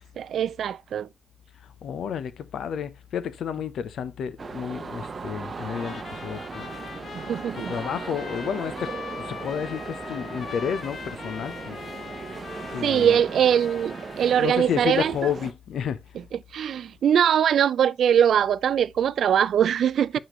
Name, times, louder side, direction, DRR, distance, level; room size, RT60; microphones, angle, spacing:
voice 1, 0.2-1.1 7.1-7.8 12.8-15.1 16.5-20.2, right 9 dB, 80° right, 0.4 m, -22 dB
voice 2, 1.6-6.7 7.5-11.8 12.7-13.2 14.4-16.0, left 8 dB, 90° left, 0.8 m, -31 dB
sound 1, 4.4-15.5, right 4 dB, 40° right, 0.7 m, -37 dB
Trumpet, 5.6-14.7, left 6 dB, 55° left, 0.9 m, -41 dB
8.0 x 4.3 x 3.1 m
wide cardioid pair, 125°, 0 cm